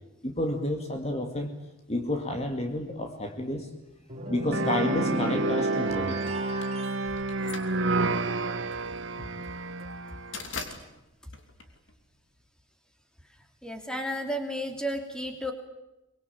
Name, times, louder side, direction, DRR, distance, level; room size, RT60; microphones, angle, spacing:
voice 1, 0.2-1.5 1.9-3.7 4.3-6.3, left 1 dB, 30° left, 5 dB, 2.2 m, -30 dB
sound 1, 4.1-7.1, right 2 dB, 30° right, 3.3 m, -32 dB
sound 2, 4.5-10.5, right 3 dB, 65° right, 1.3 m, -30 dB
sound 3, 6.3-12.4, left 4 dB, 60° left, 3.1 m, -43 dB
voice 2, 13.6-15.5, equal, 5° left, 5 dB, 2.9 m, -32 dB
24.0 x 22.5 x 8.7 m, 0.97 s
head